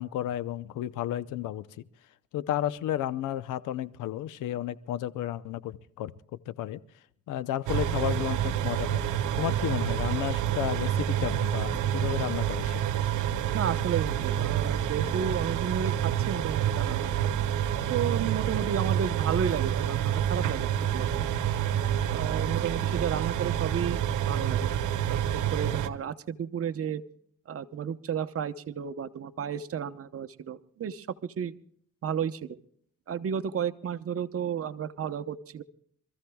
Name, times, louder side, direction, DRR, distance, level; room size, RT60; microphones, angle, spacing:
voice 1, 0.0-1.7 2.3-6.1 6.5-6.8 7.3-9.0 9.4-12.8, left 12 dB, 85° left, 16 dB, 0.8 m, -32 dB
sound 1, 7.7-25.9, right 10 dB, 80° right, 1.1 m, -28 dB
voice 2, 13.5-17.3 17.9-21.2 22.1-24.0 24.3-24.7 25.0-27.0 27.5-31.5 32.0-32.6 33.1-35.6, right 8 dB, 50° right, 11 dB, 1.0 m, -32 dB
26.5 x 14.5 x 2.3 m, 0.64 s
cardioid pair, 90°, 30 cm